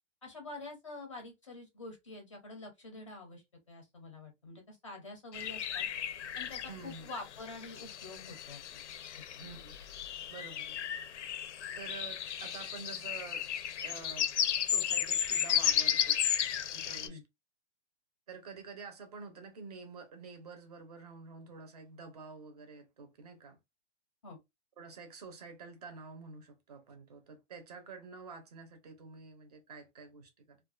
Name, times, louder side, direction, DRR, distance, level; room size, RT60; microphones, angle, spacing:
voice 1, 0.2-5.9 6.4-8.8 9.2-9.5 17.0-17.2 24.2-24.4, left 2 dB, 30° left, 0.5 m, -47 dB
sound 1, 5.3-17.1, left 9 dB, 75° left, 0.5 m, -34 dB
voice 2, 6.7-7.1 9.4-9.7 10.3-10.8 11.7-13.5 13.8-14.3 14.6-16.1 16.7-17.2 18.3-23.6 24.8-30.6, right 4 dB, 35° right, 0.5 m, -48 dB
2.4 x 2.2 x 2.3 m
hypercardioid pair, 175°, 35 cm